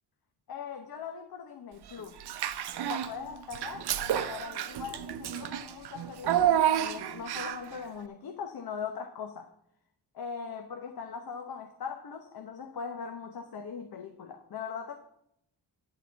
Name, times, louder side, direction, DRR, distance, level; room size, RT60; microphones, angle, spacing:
voice 1, 0.5-2.2 2.8-9.5 10.1-15.0, left 6 dB, 55° left, 1.1 m, -40 dB
Child speech kid speaking / Bathtub (filling or washing), 2.2-3.1 3.5-7.7, right 10 dB, 60° right, 0.7 m, -29 dB
11.0 x 4.4 x 8.0 m
cardioid pair, 125°, 44 cm